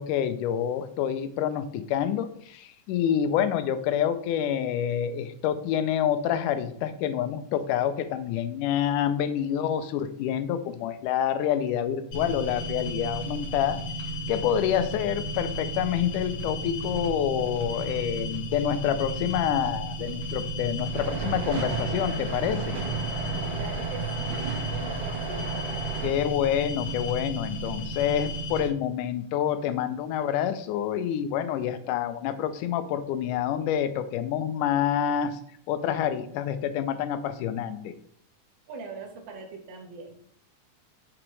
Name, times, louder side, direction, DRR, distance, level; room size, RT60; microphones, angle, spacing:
voice 1, 0.0-13.8 14.3-22.8 26.0-35.4 35.7-37.9, left 9 dB, 85° left, 11 dB, 2.1 m, -27 dB
sound 1, 12.1-28.7, equal, 60° left, 3.3 m, -34 dB
sound 2, 20.9-26.1, right 5 dB, 90° right, 2.7 m, -33 dB
voice 2, 23.5-24.5 24.7-25.6 38.7-40.2, right 3 dB, 55° right, 2 dB, 1.3 m, -42 dB
6.1 x 6.1 x 3.1 m, 0.65 s
omnidirectional pair, 3.6 m